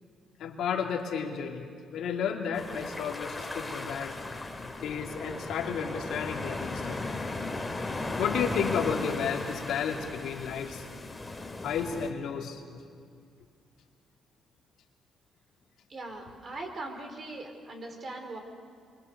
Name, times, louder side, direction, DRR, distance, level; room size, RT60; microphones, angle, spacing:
voice 1, 0.4-4.3 4.8-7.0 8.2-10.9 11.6-12.8, left 7 dB, 80° left, 1 dB, 2.7 m, -32 dB
sound 1, 2.5-12.1, left 2 dB, 15° left, 2.5 m, -36 dB
voice 2, 15.9-18.4, right 2 dB, 45° right, 3 dB, 4.4 m, -40 dB
27.0 x 24.0 x 6.8 m, 2.3 s
cardioid pair, 90°, 0 cm